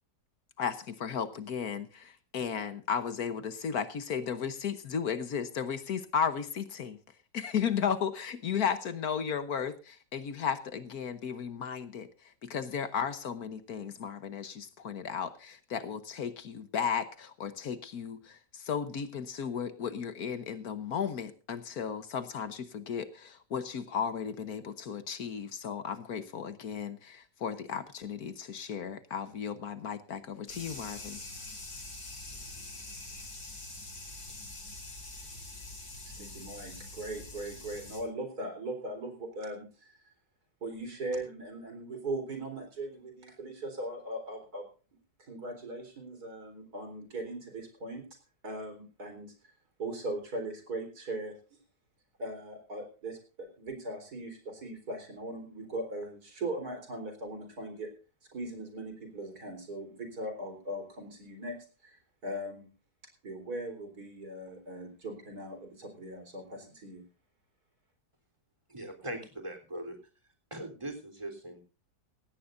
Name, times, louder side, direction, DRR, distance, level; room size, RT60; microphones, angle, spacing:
voice 1, 0.6-7.0 7.3-31.2, left 7 dB, 65° left, 12 dB, 1.5 m, -35 dB
sound 1, 30.5-38.0, left 2 dB, 90° left, 5.2 m, -44 dB
voice 2, 36.0-40.0 40.6-44.7 45.2-48.1 48.4-49.5 49.8-51.3 52.2-57.9 58.3-62.7 63.2-67.0, right 1 dB, 65° right, 5 dB, 4.5 m, -39 dB
voice 3, 68.7-70.0 70.5-71.6, right 1 dB, 15° right, 3 dB, 3.5 m, -40 dB
17.0 x 16.5 x 2.6 m, 0.34 s
omnidirectional pair, 1.8 m